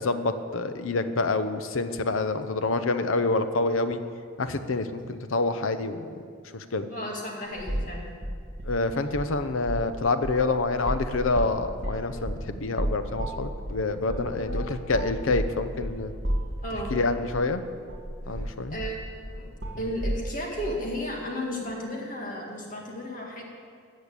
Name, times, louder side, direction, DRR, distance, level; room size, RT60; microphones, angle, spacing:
voice 1, 0.0-4.0 4.4-6.1 6.5-6.9 8.7-16.1 16.9-17.6 18.3-18.8, left 3 dB, 80° left, 10 dB, 0.8 m, -27 dB
voice 2, 6.9-8.1 14.3-14.6 16.6-17.0 18.4-18.5 18.7-19.0 19.3-19.5 19.8-23.4, equal, 40° left, -1 dB, 2.2 m, -34 dB
sound 1, 7.6-8.0 8.2-9.3 9.6-9.9 10.2-17.0 17.3-17.4 17.9-20.2, equal, 60° right, 2.3 m, -32 dB
14.0 x 6.6 x 8.5 m, 2.1 s
head